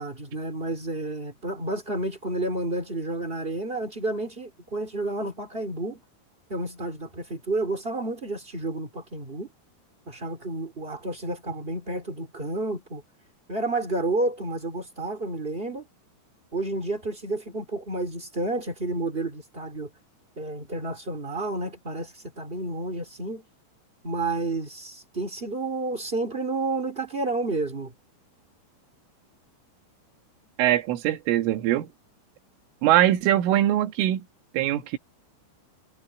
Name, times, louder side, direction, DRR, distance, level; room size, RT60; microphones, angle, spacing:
voice 1, 0.0-6.0 6.5-9.5 10.1-13.0 13.5-15.8 16.5-19.9 20.3-23.4 24.0-27.9, right 2 dB, 20° right, 1.5 m, -30 dB
voice 2, 30.6-31.9 32.8-34.3 34.5-35.0, right 13 dB, 80° right, 4.1 m, -22 dB
omnidirectional pair, 5.7 m